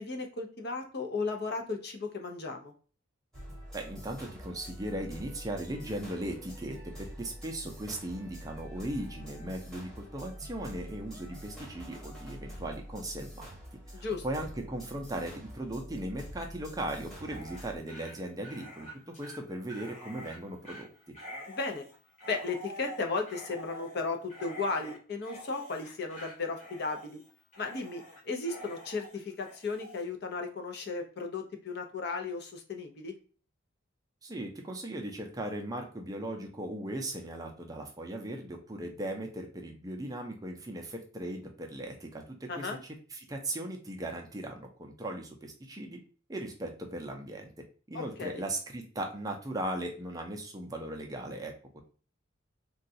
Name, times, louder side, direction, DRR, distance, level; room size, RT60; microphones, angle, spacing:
voice 1, 0.0-2.7 13.9-14.2 21.5-21.8 22.3-27.2 27.6-33.1 42.5-42.8 47.9-48.4, left 4 dB, 50° left, 4 dB, 0.6 m, -35 dB
sound 1, 3.3-17.8, equal, 5° left, 1.0 m, -46 dB
voice 2, 3.7-13.5 13.9-21.1 34.2-42.8 43.1-46.0 46.3-47.5 47.9-51.8, right 1 dB, 15° right, 2 dB, 0.4 m, -38 dB
Dog, 17.1-30.0, equal, 35° left, 1.5 m, -47 dB
3.8 x 2.3 x 2.6 m, 0.40 s
head